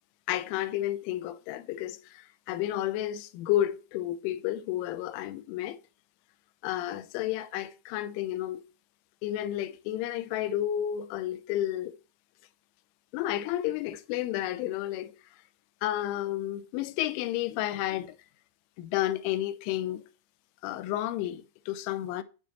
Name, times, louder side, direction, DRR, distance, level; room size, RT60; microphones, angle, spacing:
voice 1, 0.3-5.8 6.6-8.6 9.2-11.9 13.1-15.1 15.8-18.2 18.8-20.0 20.6-22.2, left 13 dB, 80° left, 3.0 m, -31 dB
9.2 x 8.7 x 3.0 m
omnidirectional pair, 5.8 m